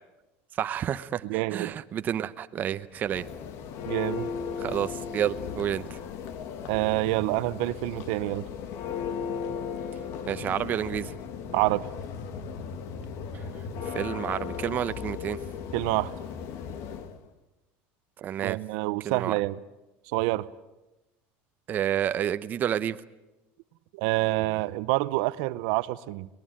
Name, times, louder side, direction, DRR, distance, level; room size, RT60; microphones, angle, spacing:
voice 1, 0.5-3.2 4.6-6.0 10.3-11.1 13.3-13.4 13.8-15.4 18.2-18.6 19.0-19.4 21.7-23.0, right 10 dB, 35° right, 11 dB, 0.8 m, -30 dB
voice 2, 1.2-1.7 3.9-4.3 6.7-8.4 11.5-11.8 15.7-16.1 18.4-19.6 20.1-20.5 23.9-26.3, right 19 dB, 70° right, 15 dB, 0.8 m, -27 dB
Church bell, 2.9-17.2, left 6 dB, 55° left, 1.8 m, -36 dB
23.5 x 20.0 x 8.9 m, 1.0 s
cardioid pair, 145°, 6 cm